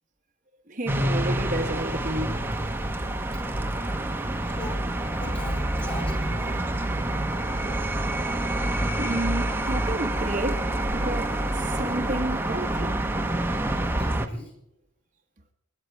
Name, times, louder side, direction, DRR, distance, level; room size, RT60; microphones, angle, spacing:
voice 1, 0.7-2.5 9.0-13.0, right 1 dB, 35° right, 1.1 m, -31 dB
sound 1, 0.9-14.3, right 1 dB, 10° right, 1.0 m, -27 dB
voice 2, 4.4-6.7 14.0-14.5, left 1 dB, 25° left, 4.7 m, -39 dB
28.5 x 9.6 x 3.4 m
head